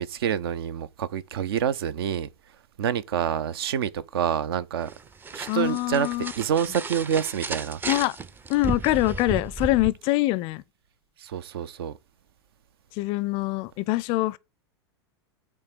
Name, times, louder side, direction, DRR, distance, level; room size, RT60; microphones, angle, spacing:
voice 1, 0.0-2.3 2.8-4.9 5.3-6.1 6.4-7.8 11.2-12.0, right 8 dB, 60° right, 0.6 m, -27 dB
sound 1, 4.8-9.9, right 4 dB, 15° right, 0.5 m, -34 dB
voice 2, 5.5-6.3 7.8-8.2 8.5-10.6 12.9-14.4, left 18 dB, 40° left, 0.5 m, -24 dB
8.6 x 3.6 x 6.5 m
figure-of-eight pair, 90°, 14 cm